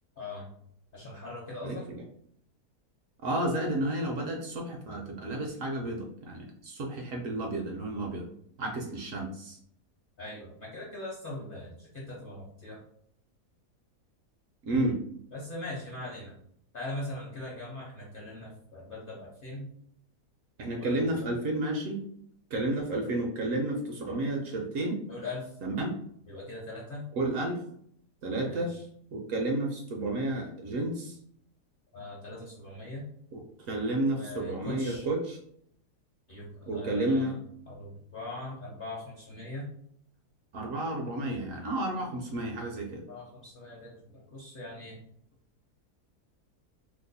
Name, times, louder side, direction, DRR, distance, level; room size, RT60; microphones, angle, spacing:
voice 1, 0.2-0.5 0.9-1.9 10.2-12.8 15.3-16.3 16.7-19.7 20.7-21.1 25.1-25.6 26.3-27.1 28.5-28.8 31.9-33.1 34.1-35.1 36.3-37.4 37.7-39.7 43.1-45.0, left 2 dB, 50° left, -4 dB, 0.7 m, -41 dB
voice 2, 1.6-2.0 3.2-8.3 8.6-9.6 14.6-15.0 20.6-22.0 22.5-25.0 25.6-25.9 27.2-27.6 28.2-28.8 29.1-31.1 33.3-33.4 33.7-35.4 36.7-37.4 40.5-43.0, right 1 dB, 65° right, 1 dB, 0.8 m, -31 dB
2.9 x 2.1 x 3.9 m, 0.67 s
omnidirectional pair, 1.7 m